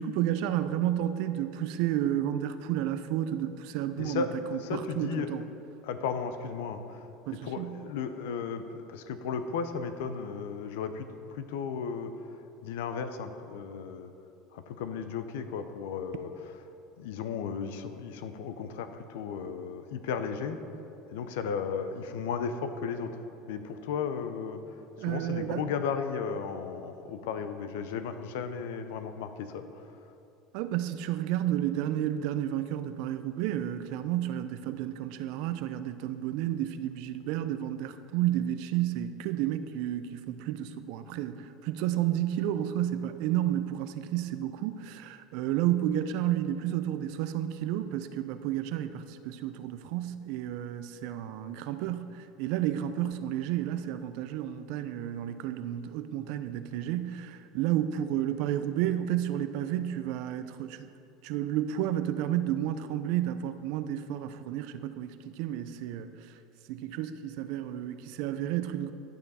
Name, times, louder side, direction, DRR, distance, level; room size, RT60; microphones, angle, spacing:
voice 1, 0.0-5.4 7.3-7.8 25.0-25.7 30.5-60.9 61.2-66.4 66.7-68.9, right 12 dB, 70° right, 11 dB, 0.5 m, -31 dB
voice 2, 4.0-5.5 5.8-12.1 12.6-14.1 14.5-16.7 17.0-20.6 21.1-23.1 23.5-24.6 25.0-29.9, left 6 dB, 80° left, 9 dB, 0.7 m, -35 dB
11.0 x 6.7 x 4.2 m, 2.7 s
supercardioid pair, 95°, 0 cm